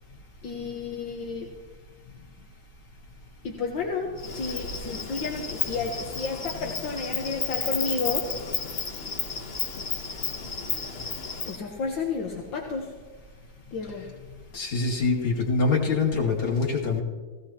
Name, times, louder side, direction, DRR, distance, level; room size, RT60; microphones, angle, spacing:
voice 1, 0.4-1.5 2.1-2.2 3.4-8.4 10.3-10.4 11.5-12.9 13.7-14.4, left 4 dB, 65° left, 0 dB, 1.8 m, -32 dB
Insect, 4.2-11.6, left 5 dB, 40° left, 0.9 m, -32 dB
voice 2, 14.5-17.0, left 4 dB, 85° left, -2 dB, 3.2 m, -24 dB
18.0 x 16.5 x 2.9 m, 1.3 s
omnidirectional pair, 2.3 m